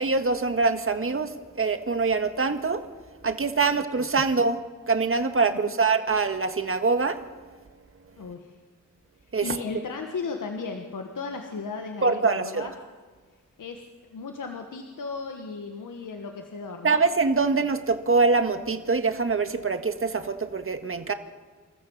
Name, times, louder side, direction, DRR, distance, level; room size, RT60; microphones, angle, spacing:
voice 1, 0.0-2.8 3.2-4.6 4.9-7.2 9.3-9.6 12.0-12.7 16.8-21.1, right 4 dB, 45° right, 8 dB, 1.7 m, -24 dB
voice 2, 8.2-8.5 9.4-12.7 13.6-13.8 14.1-17.0, left 4 dB, 90° left, 3 dB, 1.6 m, -35 dB
28.0 x 14.0 x 7.3 m, 1.4 s
cardioid pair, 60°, 31 cm